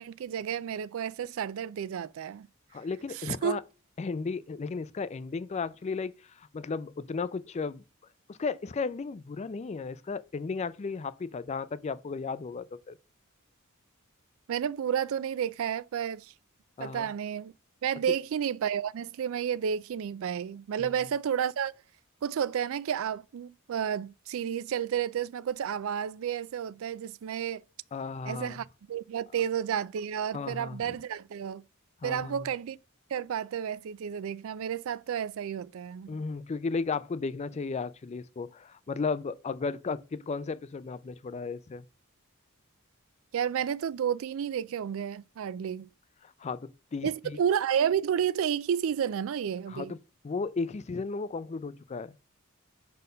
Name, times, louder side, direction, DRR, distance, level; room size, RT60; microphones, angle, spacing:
voice 1, 0.0-2.5 3.1-3.6 14.5-16.3 16.8-17.5 17.8-21.7 22.2-27.6 28.2-31.6 32.0-32.8 33.1-36.1 43.3-45.9 47.0-49.9, right 8 dB, 65° right, 0.3 m, -31 dB
voice 2, 2.7-3.6 4.0-6.1 6.4-7.8 8.3-13.0 16.8-17.1 20.8-20.9 27.9-28.6 30.3-30.8 32.0-32.5 36.1-41.8 46.2-47.4 49.7-50.0 50.2-52.2, left 4 dB, 30° left, 0.3 m, -34 dB
5.3 x 4.2 x 5.4 m
head